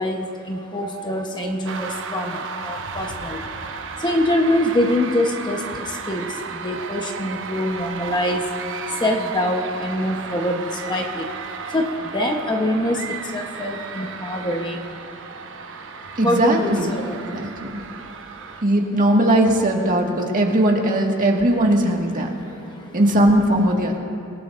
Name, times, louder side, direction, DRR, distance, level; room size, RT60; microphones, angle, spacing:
voice 1, 0.0-2.4 2.6-3.4 4.0-5.6 6.1-6.2 6.6-8.4 9.0-10.6 10.9-11.2 11.7-13.0 13.3-14.8 16.2-17.4, left 1 dB, 20° left, 2 dB, 1.0 m, -24 dB
sound 1, 1.7-18.6, right 5 dB, 60° right, 0.9 m, -34 dB
voice 2, 16.2-16.9 17.3-17.8 18.6-22.3 22.9-24.0, right 1 dB, 40° right, 0 dB, 1.8 m, -19 dB
27.5 x 17.5 x 2.6 m, 2.7 s
head